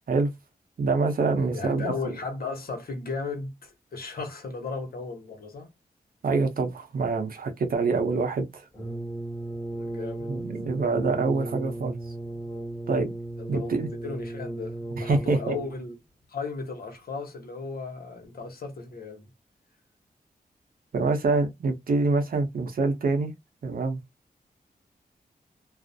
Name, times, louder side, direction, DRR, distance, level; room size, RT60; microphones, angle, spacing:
voice 1, 0.8-2.1 6.2-8.7 10.3-12.0 12.9-13.1 13.5-13.9 14.9-15.5 20.9-23.3 23.6-24.0, right 3 dB, 65° right, 0.7 m, -25 dB
voice 2, 1.5-5.7 9.7-10.3 13.4-15.9 16.3-19.3, left 4 dB, 70° left, 1.0 m, -35 dB
Brass instrument, 8.7-15.9, right 2 dB, 15° left, 1.2 m, -36 dB
2.4 x 2.0 x 2.6 m
cardioid pair, 65°, 16 cm